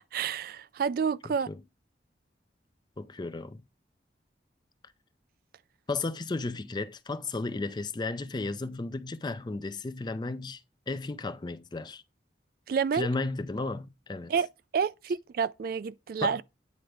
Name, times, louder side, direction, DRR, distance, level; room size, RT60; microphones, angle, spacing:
voice 1, 0.1-1.5 12.7-13.1 14.3-14.5 14.7-16.4, right 6 dB, 55° right, 0.3 m, -29 dB
voice 2, 3.0-3.6 5.9-10.6 10.9-12.0 12.9-14.3 16.2-16.4, left 3 dB, 25° left, 0.4 m, -34 dB
9.4 x 3.3 x 5.0 m
head